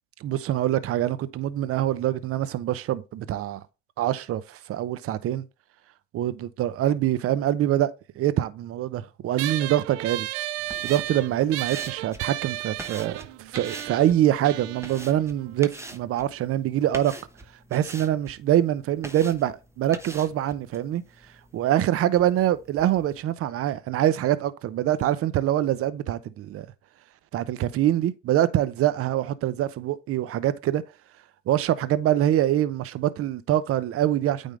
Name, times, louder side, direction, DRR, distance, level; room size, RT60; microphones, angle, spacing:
voice 1, 0.2-3.6 4.0-5.4 6.1-10.3 10.8-17.1 17.7-21.0 21.5-26.7 27.3-30.8 31.5-34.6, right 12 dB, 40° right, 0.7 m, -24 dB
sound 1, 9.4-16.2, right 16 dB, 85° right, 0.5 m, -34 dB
sound 2, 10.6-23.2, right 1 dB, 10° right, 0.9 m, -45 dB
8.8 x 3.6 x 3.7 m
hypercardioid pair, 85°, 34 cm